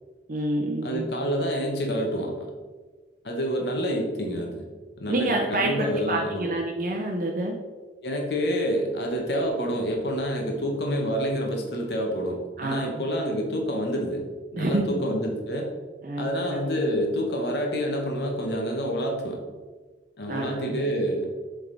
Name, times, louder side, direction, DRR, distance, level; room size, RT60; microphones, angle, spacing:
voice 1, 0.3-1.1 5.1-7.5 12.6-13.1 14.6-15.0 16.0-16.3 20.3-20.8, right 1 dB, 50° right, 0 dB, 0.6 m, -27 dB
voice 2, 0.8-2.5 3.2-4.7 5.0-6.5 8.0-14.3 14.5-15.7 16.2-19.4 20.2-21.3, equal, 70° left, 1 dB, 1.0 m, -28 dB
7.6 x 3.6 x 3.8 m, 1.4 s
head